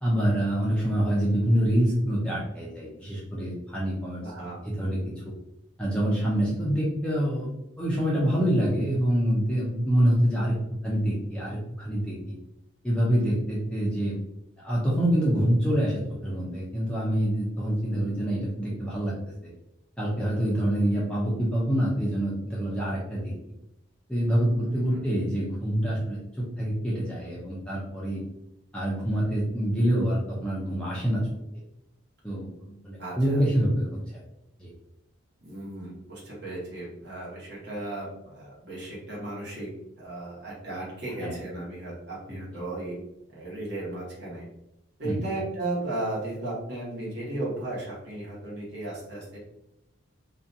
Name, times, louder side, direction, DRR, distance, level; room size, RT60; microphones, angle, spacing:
voice 1, 0.0-5.0 5.8-7.5 7.8-10.5 10.8-12.3 12.8-14.2 14.6-19.1 20.0-23.3 24.1-28.2 28.7-31.2 32.2-33.9 34.6-34.7 41.2-41.4 42.3-42.6 45.0-45.3, equal, 5° left, -7 dB, 0.4 m, -26 dB
voice 2, 4.2-4.6 24.9-25.0 33.0-33.4 35.4-39.7 40.0-43.0 43.3-44.5 45.0-49.4, right 2 dB, 50° right, -6 dB, 1.1 m, -35 dB
2.5 x 2.2 x 2.6 m, 0.86 s
head